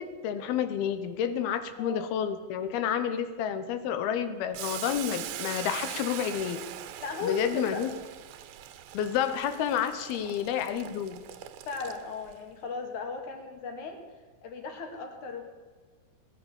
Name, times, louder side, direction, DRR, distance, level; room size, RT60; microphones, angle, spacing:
voice 1, 0.0-6.6 7.2-7.9 8.9-11.2, left 9 dB, 80° left, 10 dB, 2.9 m, -30 dB
voice 2, 1.8-2.1 7.0-7.9 11.7-14.0 14.4-15.4, left 4 dB, 55° left, 4 dB, 3.4 m, -36 dB
Boiling, 4.5-12.3, right 11 dB, 80° right, 2.8 m, -41 dB
19.0 x 11.0 x 7.1 m, 1.4 s
omnidirectional pair, 4.4 m